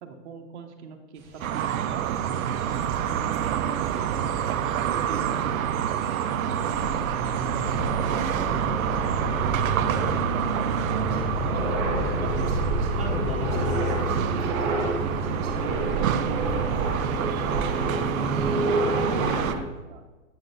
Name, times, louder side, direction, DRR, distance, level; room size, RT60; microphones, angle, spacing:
voice 1, 0.0-1.2 3.4-6.0 6.3-8.9 9.2-9.9 11.0-12.7 14.6-14.8 15.0-16.3 18.7-20.0, right 4 dB, 55° right, 2 dB, 0.9 m, -42 dB
sound 1, 1.3-19.6, right 1 dB, 20° right, 0.7 m, -29 dB
sound 2, 1.4-19.5, right 10 dB, 75° right, 0.5 m, -28 dB
voice 2, 8.9-10.2 10.6-11.4 13.0-14.2, right 1 dB, ahead, -10 dB, 1.4 m, -37 dB
7.7 x 5.9 x 2.6 m, 1.2 s
hypercardioid pair, 150°, 41 cm